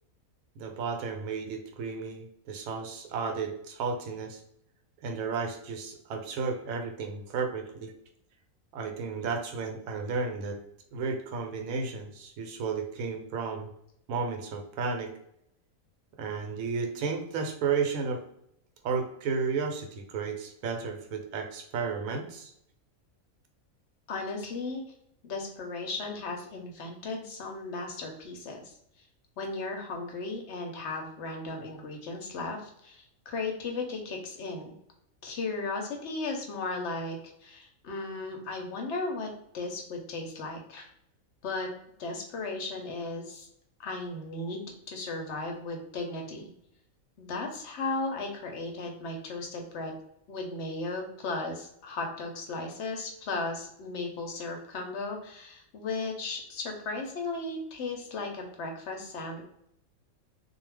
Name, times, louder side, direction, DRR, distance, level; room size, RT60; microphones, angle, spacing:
voice 1, 0.6-4.4 5.0-7.9 8.7-10.6 10.9-13.7 14.1-15.1 16.2-18.2 18.8-22.5, right 5 dB, 80° right, 4 dB, 1.0 m, -33 dB
voice 2, 24.1-24.8 25.2-28.7 29.4-34.7 35.2-39.3 39.5-40.9 41.4-41.7 42.0-43.5 43.8-46.5 47.2-49.9 50.3-59.4, left 3 dB, 60° left, 2 dB, 0.8 m, -36 dB
2.4 x 2.1 x 3.2 m, 0.74 s
omnidirectional pair, 1.5 m